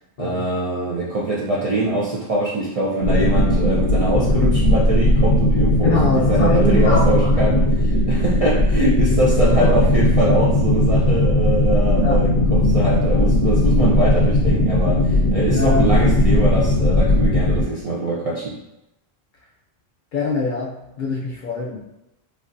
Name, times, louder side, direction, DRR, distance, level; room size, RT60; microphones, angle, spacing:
voice 1, 0.2-6.0 6.3-18.6, right 1 dB, 50° right, -6 dB, 0.4 m, -23 dB
sound 1, 3.0-17.6, left 1 dB, 90° left, 0.9 m, -17 dB
voice 2, 5.8-7.1 9.6-9.8 12.0-12.2 15.5-15.8 20.1-21.8, left 3 dB, 55° left, -3 dB, 0.7 m, -23 dB
3.2 x 2.4 x 2.5 m, 0.92 s
omnidirectional pair, 1.1 m